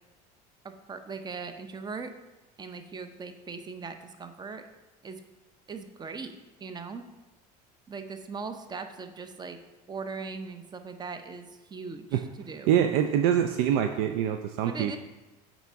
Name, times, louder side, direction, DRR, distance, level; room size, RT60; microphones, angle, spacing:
voice 1, 0.6-2.1 2.6-4.6 5.0-5.2 5.7-7.1 7.9-9.6 9.9-12.7 14.7-15.0, right 4 dB, 20° right, 8 dB, 0.6 m, -39 dB
voice 2, 12.7-15.0, right 9 dB, 70° right, 6 dB, 0.4 m, -25 dB
7.1 x 4.1 x 3.5 m, 1.1 s
supercardioid pair, 90°, 20 cm